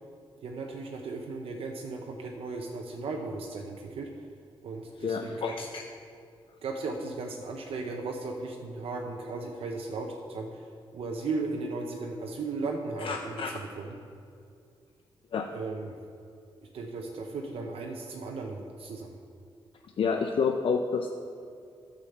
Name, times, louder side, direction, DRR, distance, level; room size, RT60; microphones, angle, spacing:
voice 1, 0.4-4.1 4.6-5.5 6.6-10.6 10.9-14.0 15.5-16.0 16.7-19.2, right 3 dB, 85° right, 1 dB, 0.8 m, -36 dB
voice 2, 5.0-5.8 13.0-13.5 15.3-15.5 20.0-21.1, left 5 dB, 65° left, 4 dB, 0.5 m, -29 dB
9.9 x 5.1 x 6.7 m, 2.4 s
wide cardioid pair, 115°, 10 cm